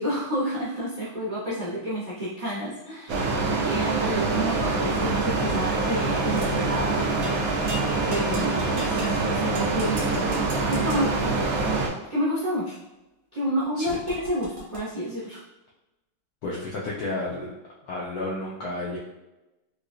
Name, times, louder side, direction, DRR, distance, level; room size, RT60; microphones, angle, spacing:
voice 1, 0.0-7.7 8.1-10.1 10.7-11.4 12.1-12.8 13.3-15.4, equal, 55° right, -10 dB, 0.4 m, -30 dB
sound 1, 3.1-11.9, right 3 dB, 90° right, 0.7 m, -25 dB
sound 2, 6.4-6.6 7.2-7.4 7.7-9.1 9.6-11.0 13.9-14.8, right 1 dB, 70° right, 1.5 m, -38 dB
voice 2, 16.4-17.5 17.8-19.0, left 2 dB, 75° left, -5 dB, 0.8 m, -31 dB
4.6 x 2.2 x 2.5 m, 0.99 s
omnidirectional pair, 2.2 m